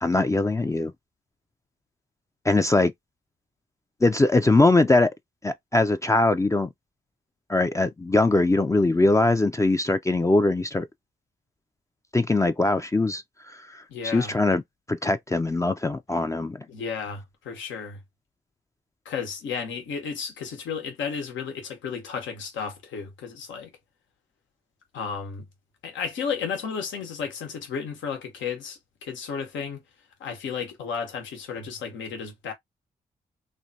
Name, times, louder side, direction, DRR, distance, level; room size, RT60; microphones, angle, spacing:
voice 1, 0.0-0.9 2.4-2.9 4.0-5.1 5.4-6.7 7.5-10.9 12.1-14.6 14.9-16.7, left 2 dB, 15° left, 0.4 m, -22 dB
voice 2, 13.9-14.3 16.7-18.0 19.0-23.7 24.9-25.5 25.8-29.8 30.2-32.5, left 6 dB, 80° left, 1.0 m, -33 dB
3.2 x 2.2 x 2.6 m
supercardioid pair, 40°, 19 cm